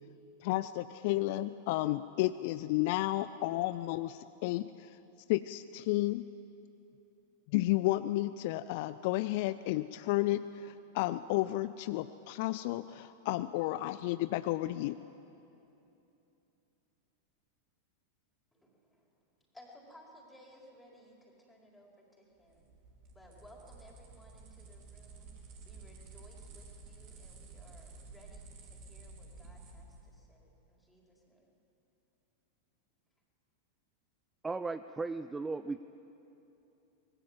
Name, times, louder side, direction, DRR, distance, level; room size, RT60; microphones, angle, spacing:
voice 1, 0.4-5.0 5.3-6.2 7.5-15.1, left 17 dB, 50° left, 14 dB, 0.4 m, -32 dB
voice 2, 18.5-19.2 19.5-22.7 23.1-31.5, equal, 5° left, -1 dB, 4.7 m, -59 dB
sound 1, 22.4-30.0, right 3 dB, 40° right, 4.4 m, -52 dB
voice 3, 34.4-35.9, right 3 dB, 10° right, 13 dB, 0.5 m, -36 dB
25.0 x 20.0 x 7.6 m, 2.9 s
figure-of-eight pair, 90°, 0 cm